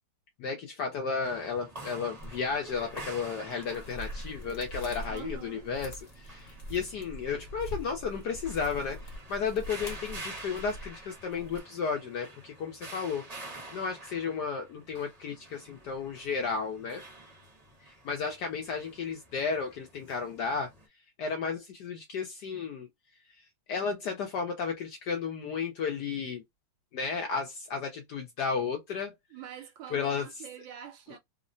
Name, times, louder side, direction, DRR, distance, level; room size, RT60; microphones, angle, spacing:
voice 1, 0.4-17.0 17.8-20.7 21.2-22.9 23.7-26.4 26.9-29.1 29.9-30.3, left 5 dB, 70° left, 1.0 m, -33 dB
sound 1, 1.2-20.9, right 2 dB, 25° right, 0.8 m, -48 dB
sound 2, 2.2-11.6, equal, 50° left, 0.5 m, -43 dB
voice 2, 5.1-5.7 29.3-31.2, right 10 dB, 70° right, 1.3 m, -45 dB
3.6 x 2.0 x 2.5 m
omnidirectional pair, 2.3 m